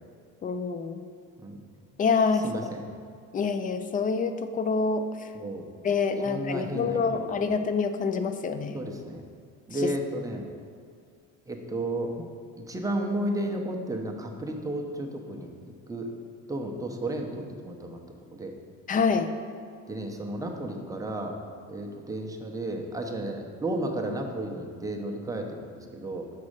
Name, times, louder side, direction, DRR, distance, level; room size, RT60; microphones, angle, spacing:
voice 1, 0.4-1.0 2.0-2.5 3.3-5.1 5.8-8.8 9.8-9.9 18.9-19.3, left 5 dB, 25° left, 9 dB, 0.4 m, -26 dB
voice 2, 2.4-2.9 5.3-5.6 6.2-7.5 8.7-9.2 9.7-10.5 11.5-12.1 12.6-15.5 15.9-16.1 16.5-18.0 18.3-18.5 19.9-21.4 21.7-26.3, right 1 dB, 10° right, 1 dB, 0.7 m, -33 dB
6.3 x 4.2 x 6.4 m, 2.2 s
cardioid pair, 130°, 32 cm